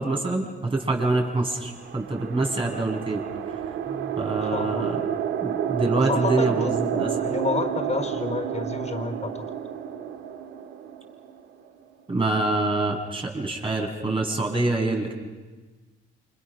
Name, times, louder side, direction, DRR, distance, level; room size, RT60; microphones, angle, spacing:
voice 1, 0.0-3.2 4.2-5.0 5.4-7.1 12.1-15.1, right 2 dB, 25° right, 2 dB, 7.1 m, -26 dB
sound 1, 1.4-11.9, right 9 dB, 80° right, 1.6 m, -30 dB
voice 2, 3.9-4.9 6.0-9.4, left 3 dB, 35° left, 7 dB, 4.2 m, -30 dB
29.5 x 27.5 x 6.5 m, 1.3 s
cardioid pair, 90°, 20 cm